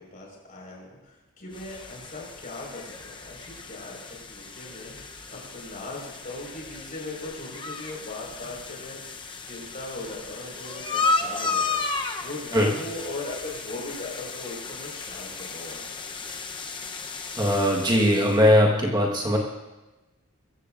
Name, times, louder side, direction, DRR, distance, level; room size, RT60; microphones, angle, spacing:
voice 1, 0.1-4.0 4.3-4.9 5.3-9.0 9.4-16.1, left 2 dB, 40° left, -2 dB, 4.9 m, -39 dB
sound 1, 1.5-18.5, left 4 dB, 25° left, 0.8 m, -34 dB
voice 2, 17.4-19.4, equal, 20° right, -1 dB, 1.4 m, -20 dB
22.5 x 15.0 x 2.6 m, 1.1 s
head